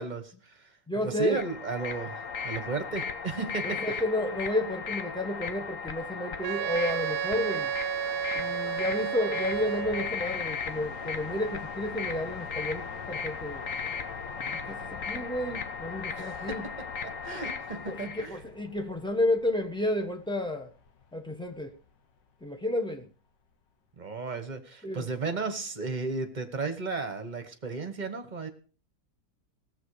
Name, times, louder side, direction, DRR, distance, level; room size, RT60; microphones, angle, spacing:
voice 1, 0.0-0.7 1.0-3.8 14.4-15.0 16.2-18.4 24.0-28.5, right 4 dB, 30° right, 8 dB, 1.2 m, -35 dB
voice 2, 0.9-1.4 3.8-7.7 8.3-13.7 14.5-16.7 17.9-20.7 21.1-21.7 22.4-23.1 24.8-25.1, left 1 dB, 5° left, 4 dB, 1.0 m, -31 dB
sound 1, 1.2-18.3, left 5 dB, 50° left, 1.3 m, -37 dB
Wind instrument woodwind instrument, 6.4-10.2, right 9 dB, 65° right, 1.2 m, -32 dB
sound 2, 9.5-23.5, left 6 dB, 85° left, 1.9 m, -48 dB
18.0 x 7.7 x 4.9 m, 0.39 s
omnidirectional pair, 1.9 m